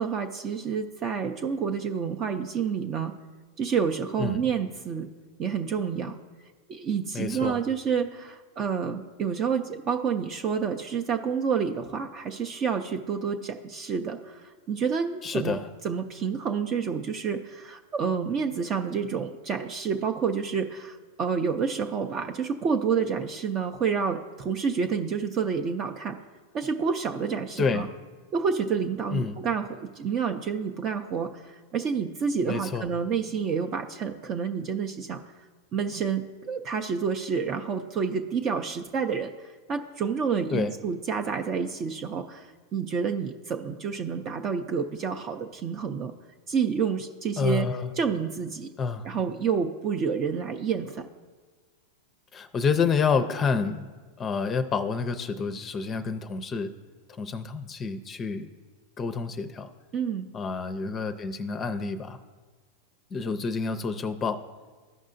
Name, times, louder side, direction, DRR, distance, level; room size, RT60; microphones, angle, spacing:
voice 1, 0.0-3.1 3.6-5.1 5.4-6.2 6.7-15.6 15.8-26.2 26.5-27.9 28.3-35.2 35.7-46.1 46.5-47.7 48.0-48.7 49.0-51.1 59.9-60.3, right 6 dB, 35° right, 5 dB, 0.5 m, -29 dB
voice 2, 7.1-7.6 15.2-15.7 27.6-27.8 29.1-29.4 32.5-32.9 40.5-40.7 47.4-47.9 48.8-49.1 52.3-53.9 54.2-56.7 57.2-58.5 59.0-59.7 60.3-62.2 63.1-64.4, left 5 dB, 25° left, 9 dB, 0.5 m, -28 dB
14.5 x 5.3 x 2.6 m, 1.4 s
hypercardioid pair, 110°, 0 cm